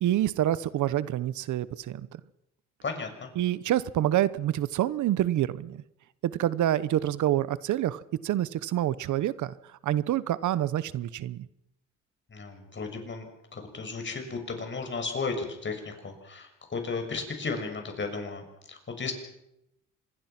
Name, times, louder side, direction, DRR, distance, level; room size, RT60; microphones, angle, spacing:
voice 1, 0.0-2.0 3.4-5.8 6.2-9.5 9.8-11.5, right 12 dB, 75° right, 17 dB, 1.0 m, -27 dB
voice 2, 2.8-3.3 12.3-19.1, left 4 dB, 40° left, 5 dB, 6.7 m, -34 dB
26.0 x 21.5 x 6.0 m, 0.83 s
cardioid pair, 90°, 30 cm